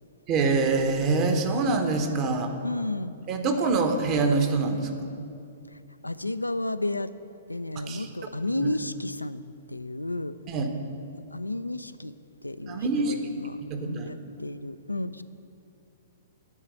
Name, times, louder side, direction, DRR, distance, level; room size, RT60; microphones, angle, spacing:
voice 1, 0.3-2.5 3.3-5.1 7.8-8.1 8.6-8.7 10.5-10.7 12.7-13.2 13.7-14.1, right 3 dB, 30° right, 5 dB, 1.0 m, -25 dB
voice 2, 2.6-3.2 5.7-7.1 7.5-9.4 9.7-10.4 11.3-12.1 12.4-15.2, left 1 dB, 85° left, 13 dB, 0.3 m, -32 dB
9.8 x 4.8 x 7.8 m, 2.5 s
figure-of-eight pair, 110°, 0 cm